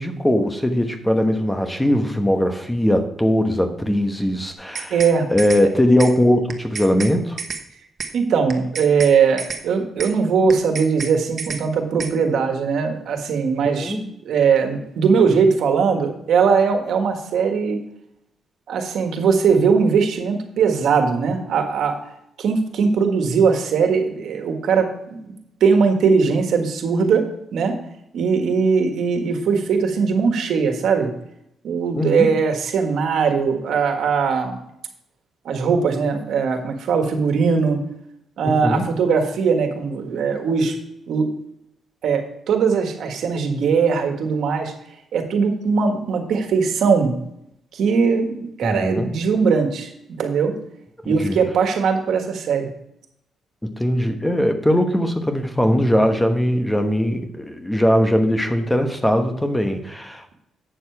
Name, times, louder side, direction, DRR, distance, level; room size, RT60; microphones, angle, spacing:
voice 1, 0.0-5.0 5.3-7.4 13.6-14.0 31.9-32.3 38.4-38.8 48.6-49.1 51.0-51.4 53.6-60.3, equal, 10° left, 6 dB, 1.1 m, -20 dB
sound 1, 4.5-5.1 5.4-5.6 6.0-6.1 6.5-7.1 7.4-7.6 8.0-8.1 8.5-9.1 9.4-9.6 10.0-10.1 10.5-11.1 11.4-11.6 12.0-12.1, right 5 dB, 50° right, 1.1 m, -30 dB
voice 2, 4.9-5.3 8.1-17.8 18.7-21.9 22.4-25.3 25.6-27.2 27.5-27.8 28.1-31.1 31.6-34.6 35.4-37.8 38.4-40.7 41.1-41.3 42.0-44.7 45.1-47.2 47.7-49.9 50.2-50.5 51.0-52.7, right 5 dB, 75° right, 5 dB, 1.6 m, -20 dB
8.7 x 6.9 x 4.7 m, 0.78 s
cardioid pair, 90°, 0 cm